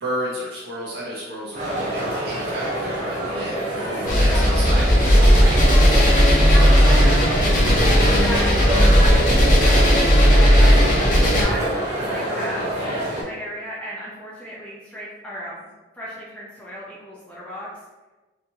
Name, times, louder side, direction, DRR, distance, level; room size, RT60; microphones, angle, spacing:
voice 1, 0.0-6.7, right 1 dB, 55° right, -8 dB, 0.9 m, -33 dB
sound 1, 1.5-13.2, right 1 dB, 35° right, 1.3 m, -27 dB
voice 2, 3.9-4.6 6.3-7.4 8.2-10.0 10.3-12.6 13.2-15.7 15.9-17.7, equal, 5° left, -7 dB, 0.7 m, -35 dB
sound 2, 4.0-11.4, equal, 40° left, 1.0 m, -15 dB
4.0 x 3.0 x 2.8 m, 1.2 s
head